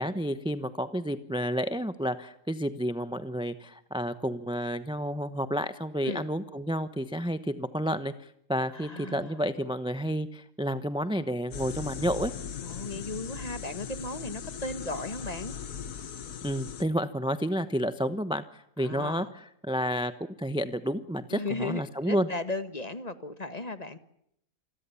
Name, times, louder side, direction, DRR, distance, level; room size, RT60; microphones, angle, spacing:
voice 1, 0.0-12.3 16.4-20.1 20.4-22.3, equal, 5° right, 11 dB, 0.8 m, -30 dB
voice 2, 8.7-9.4 12.6-15.5 18.8-19.3 21.3-24.0, left 2 dB, 25° left, 11 dB, 1.6 m, -36 dB
sound 1, 11.5-16.8, left 7 dB, 85° left, 1.9 m, -39 dB
28.5 x 21.5 x 7.1 m, 0.75 s
omnidirectional pair, 1.6 m